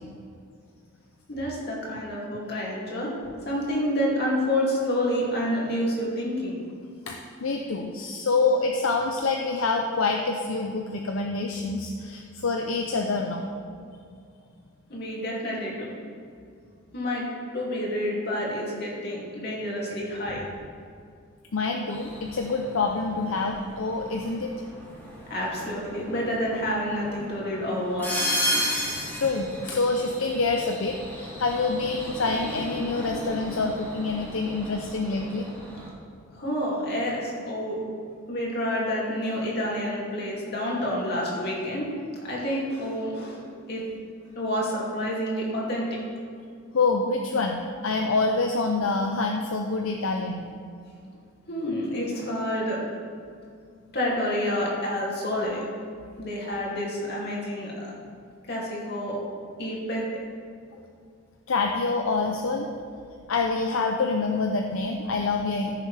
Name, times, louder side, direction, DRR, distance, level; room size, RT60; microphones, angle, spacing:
voice 1, 1.3-3.1 3.4-6.6 14.9-15.9 16.9-17.3 17.5-20.4 25.3-28.3 35.8-35.9 36.3-37.8 38.3-41.9 42.2-43.8 44.3-46.0 51.5-52.8 53.9-55.6 56.2-57.9 58.5-59.2 59.6-60.0, equal, 50° left, -4 dB, 2.6 m, -28 dB
voice 2, 7.1-13.4 21.5-24.5 29.1-35.5 46.7-50.5 60.7-60.8 61.5-62.7 63.3-65.7, left 3 dB, 75° left, 2 dB, 0.6 m, -26 dB
sound 1, 21.9-35.9, equal, 10° left, 2.4 m, -35 dB
14.5 x 6.8 x 3.4 m, 2.3 s
head